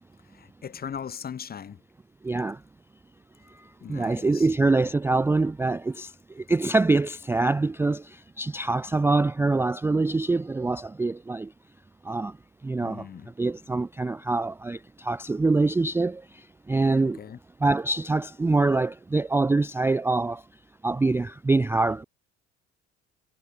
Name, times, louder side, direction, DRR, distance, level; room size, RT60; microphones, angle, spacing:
voice 1, 0.3-1.8 3.8-4.5 12.8-13.3 17.0-17.4, left 8 dB, 30° left, 0.8 m, -39 dB
voice 2, 2.2-2.6 3.5-11.5 12.0-12.4 12.6-13.1 13.4-17.2 17.6-20.4 20.8-22.0, right 3 dB, 5° right, 0.4 m, -25 dB
hypercardioid pair, 55°, 34 cm